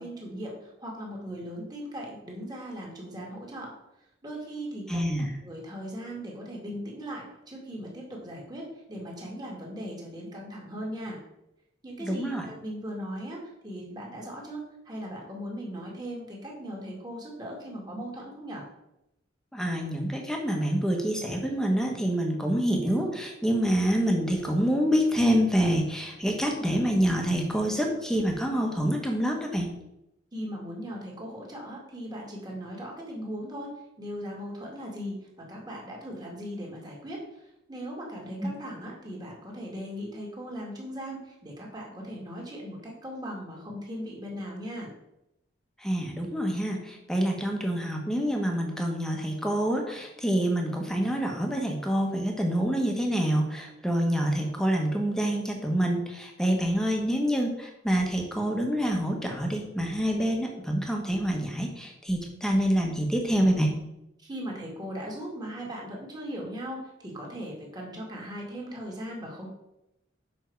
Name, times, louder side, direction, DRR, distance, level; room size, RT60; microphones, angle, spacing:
voice 1, 0.0-3.7 4.2-5.1 5.4-11.2 11.8-18.6 30.3-33.7 34.0-37.4 37.7-44.9 64.2-69.5, equal, 20° right, -2 dB, 2.2 m, -38 dB
voice 2, 4.9-5.3 12.0-12.4 19.5-29.7 38.4-38.5 45.8-63.7, equal, 5° left, 1 dB, 1.3 m, -26 dB
7.3 x 5.8 x 4.7 m, 0.85 s
head